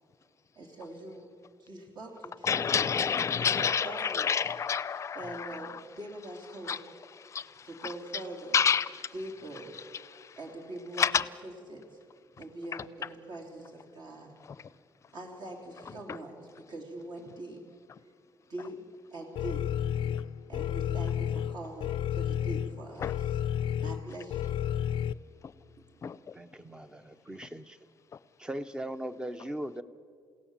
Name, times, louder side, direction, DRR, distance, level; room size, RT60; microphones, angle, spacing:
voice 1, 0.5-1.3 1.6-2.7 3.5-4.3 5.1-6.8 7.6-8.6 9.1-9.7 10.3-11.0 11.4-11.9 12.4-14.3 15.1-17.6 18.5-18.8 19.1-19.6 20.5-23.4 23.8-24.6, right 2 dB, 55° right, 0 dB, 3.3 m, -43 dB
voice 2, 2.4-5.7 6.7-6.8 7.3-7.5 8.5-9.1 10.1-10.3 11.0-11.2 12.7-12.8 23.0-23.1 26.0-26.2, left 7 dB, 35° left, 16 dB, 0.6 m, -28 dB
sound 1, 19.4-25.1, left 10 dB, 80° left, 0.5 m, -31 dB
voice 3, 26.3-27.8 28.4-29.8, right 1 dB, 10° right, 12 dB, 0.7 m, -39 dB
28.5 x 17.0 x 7.3 m, 2.2 s
cardioid pair, 170°, 9 cm